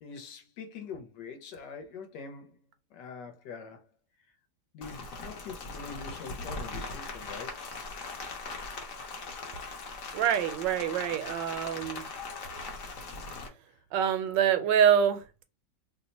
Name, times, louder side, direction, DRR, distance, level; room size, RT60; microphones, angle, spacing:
voice 1, 0.0-2.5 2.9-3.8 4.7-7.6, left 5 dB, 75° left, 1.3 m, -44 dB
Rain, 4.8-13.5, left 3 dB, 55° left, 1.0 m, -40 dB
voice 2, 10.1-12.0 13.9-15.4, right 9 dB, 80° right, 1.2 m, -26 dB
3.1 x 2.1 x 4.0 m
omnidirectional pair, 2.0 m